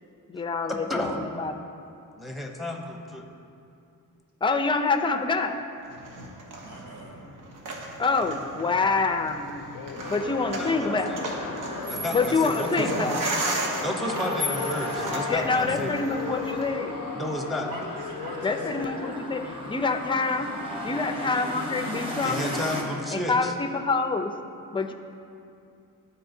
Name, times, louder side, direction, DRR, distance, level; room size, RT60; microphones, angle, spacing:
voice 1, 0.3-1.5 4.4-5.6 8.0-9.6 10.1-11.2 12.1-13.2 15.3-16.9 18.4-20.5 20.8-22.5 23.1-24.3 24.7-24.9, left 4 dB, 15° left, 6 dB, 0.4 m, -26 dB
voice 2, 0.9-1.2 2.2-3.3 10.6-11.0 11.9-13.1 13.8-16.0 17.1-17.7 22.2-23.5, left 1 dB, ahead, 1 dB, 0.8 m, -32 dB
sound 1, 5.8-16.7, right 2 dB, 70° right, 1.1 m, -35 dB
voice 3, 6.6-7.2 17.6-18.9, right 1 dB, 90° right, -3 dB, 1.5 m, -41 dB
Singing, 9.7-19.2, left 9 dB, 75° left, 0.5 m, -39 dB
sound 2, 10.0-22.8, left 1 dB, 15° right, 1.2 m, -35 dB
12.5 x 4.3 x 2.7 m, 2.5 s
cardioid pair, 95°, 33 cm